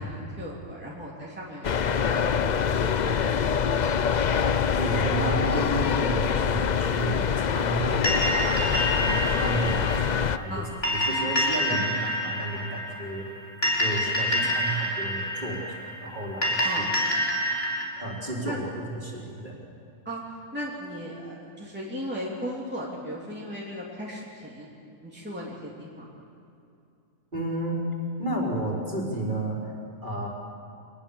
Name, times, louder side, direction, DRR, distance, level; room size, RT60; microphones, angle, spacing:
voice 1, 0.0-3.2 3.5-3.8 10.5-10.7 16.6-16.9 18.4-18.6 20.0-20.2 20.5-24.7 25.0-26.1, equal, 5° right, -5 dB, 3.2 m, -37 dB
sound 1, 1.6-10.4, left 7 dB, 60° left, 0.4 m, -25 dB
voice 2, 4.7-10.6 10.9-13.3 13.8-16.8 18.0-19.6 27.3-27.8 28.2-29.7 30.0-30.3, right 1 dB, 30° right, -3 dB, 4.6 m, -32 dB
sound 2, 8.0-17.8, equal, 40° left, 4.6 m, -27 dB
26.0 x 20.5 x 7.3 m, 2.6 s
omnidirectional pair, 1.6 m